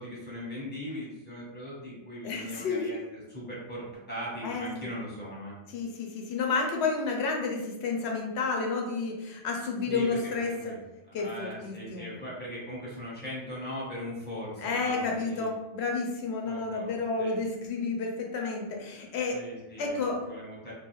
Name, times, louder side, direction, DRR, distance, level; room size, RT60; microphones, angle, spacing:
voice 1, 0.0-5.6 9.9-10.8 11.1-15.5 16.4-17.3 19.3-20.7, left 1 dB, 10° left, -7 dB, 0.8 m, -39 dB
voice 2, 2.2-3.0 4.4-4.6 5.7-10.7 11.1-12.0 14.6-19.4 19.8-20.2, left 4 dB, 65° left, 0 dB, 0.8 m, -31 dB
2.4 x 2.3 x 3.0 m, 0.95 s
omnidirectional pair, 1.2 m